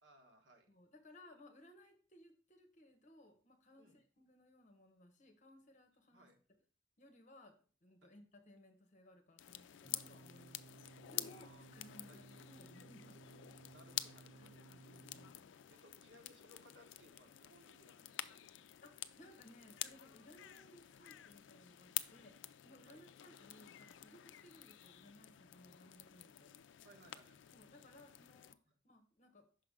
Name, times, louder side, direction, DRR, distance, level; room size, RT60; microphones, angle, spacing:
voice 1, 0.0-0.7 3.8-4.0 6.1-6.4 8.0-8.1 11.2-11.7 12.1-12.2 13.7-14.6 15.7-18.4 22.9-23.0 26.8-27.4 28.7-28.8, right 1 dB, 85° right, 4 dB, 1.2 m, -64 dB
voice 2, 0.7-6.3 7.0-10.6 11.1-13.7 14.4-15.6 18.8-26.5 27.5-28.6 28.8-29.5, left 1 dB, 45° left, 5 dB, 1.0 m, -62 dB
sound 1, 9.4-28.5, left 13 dB, 80° left, 0.3 m, -49 dB
sound 2, 9.8-15.3, right 4 dB, 45° right, 0.4 m, -60 dB
6.0 x 4.8 x 3.6 m, 0.40 s
head